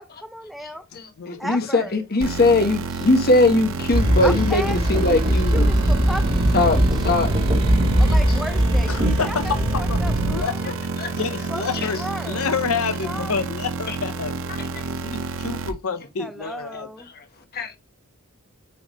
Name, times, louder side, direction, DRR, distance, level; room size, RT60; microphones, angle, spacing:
voice 1, 0.0-0.8 1.4-2.0 2.6-2.8 4.2-6.8 8.0-9.4 9.8-10.6 11.5-12.5 13.0-13.3 16.2-17.1, equal, ahead, 0.6 m, -34 dB
voice 2, 0.9-5.7 6.5-6.8 7.0-7.3 7.7-8.4 9.5-9.6 10.6-11.1 11.4-12.1 13.9-14.0 14.5-14.8 16.4-16.5 17.5-17.7, left 2 dB, 45° left, 1.2 m, -22 dB
sound 1, 2.2-15.7, right 4 dB, 65° right, 0.7 m, -30 dB
sound 2, 3.8-10.4, right 1 dB, 45° right, 1.3 m, -26 dB
sound 3, 3.9-10.9 11.4-11.5, equal, 25° right, 1.8 m, -22 dB
voice 3, 8.9-10.0 10.3-10.7 11.1-12.0 12.3-14.4 15.0-16.9, left 5 dB, 70° left, 0.7 m, -28 dB
9.4 x 3.6 x 3.0 m
head